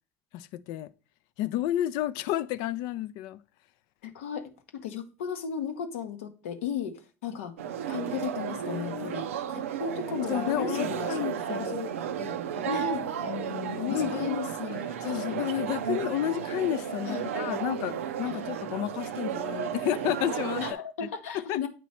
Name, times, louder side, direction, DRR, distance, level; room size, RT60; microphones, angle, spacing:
voice 1, 0.3-0.9 1.4-3.4 8.6-9.2 10.3-11.7 12.2-12.8 13.3-14.5 15.0-20.6 21.5-21.7, left 13 dB, 70° left, 0.3 m, -31 dB
voice 2, 4.0-4.5 4.8-7.5 7.9-11.2 11.6-12.0 12.6-13.1 13.8-15.4 17.1-17.3 18.3-18.4 20.6-21.7, left 7 dB, 85° left, 0.7 m, -35 dB
sound 1, 7.6-20.7, right 8 dB, 90° right, 0.4 m, -33 dB
8.3 x 3.1 x 4.2 m
hypercardioid pair, 70°, 7 cm